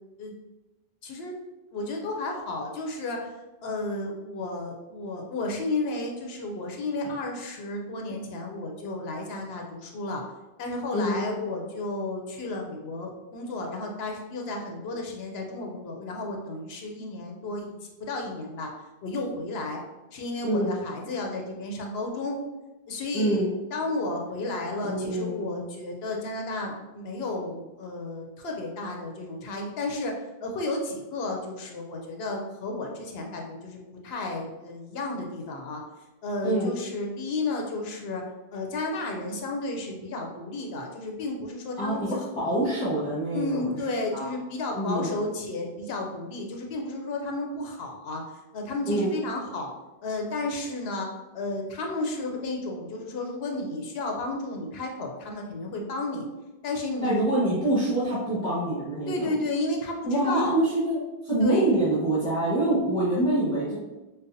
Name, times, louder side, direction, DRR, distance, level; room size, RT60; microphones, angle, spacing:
voice 1, 1.0-1.3 1.7-3.3 3.6-10.2 10.6-17.7 18.0-18.7 19.0-19.8 20.1-22.4 22.9-23.4 23.7-35.8 36.2-38.2 38.5-42.0 42.4-42.5 43.3-48.2 48.5-49.7 50.0-51.1 51.3-56.3 56.6-57.3 59.1-60.5 61.4-61.7, left 2 dB, 85° left, 1 dB, 0.9 m, -32 dB
voice 2, 23.1-23.5 24.8-25.6 36.4-36.7 41.8-43.8 44.1-44.3 44.7-45.1 48.9-49.1 57.0-59.3 60.0-63.8, right 1 dB, 5° left, -12 dB, 1.2 m, -26 dB
5.2 x 2.1 x 2.6 m, 1.1 s
omnidirectional pair, 1.0 m